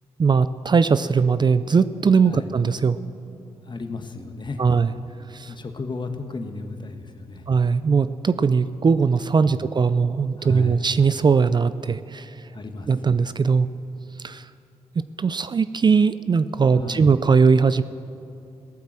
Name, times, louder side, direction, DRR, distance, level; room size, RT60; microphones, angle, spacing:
voice 1, 0.2-3.0 4.6-4.9 5.3-5.5 7.5-12.3 12.9-13.7 14.2-14.5 15.2-17.8, right 5 dB, 35° right, 14 dB, 0.4 m, -20 dB
voice 2, 3.7-4.8 5.5-7.4 9.6-9.7 10.4-10.8 12.5-12.9 16.8-17.1, left 3 dB, 40° left, 6 dB, 1.4 m, -34 dB
17.0 x 8.7 x 7.5 m, 2.7 s
cardioid pair, 60°, 13 cm